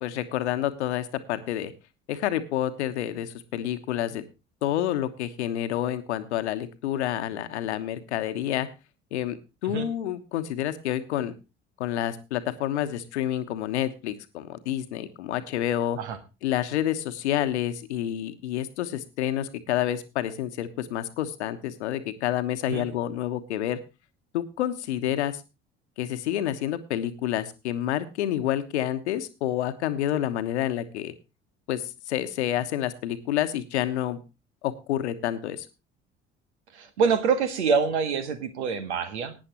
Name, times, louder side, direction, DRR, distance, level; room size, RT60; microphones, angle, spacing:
voice 1, 0.0-1.7 2.1-4.2 4.6-8.7 9.1-9.4 9.6-11.3 11.8-16.0 16.4-23.8 24.3-25.4 26.0-31.1 31.7-34.2 34.6-35.7, left 12 dB, 70° left, 10 dB, 1.2 m, -28 dB
voice 2, 36.7-39.4, right 5 dB, 75° right, 9 dB, 1.6 m, -26 dB
18.0 x 9.8 x 3.0 m, 0.28 s
figure-of-eight pair, 55°, 35 cm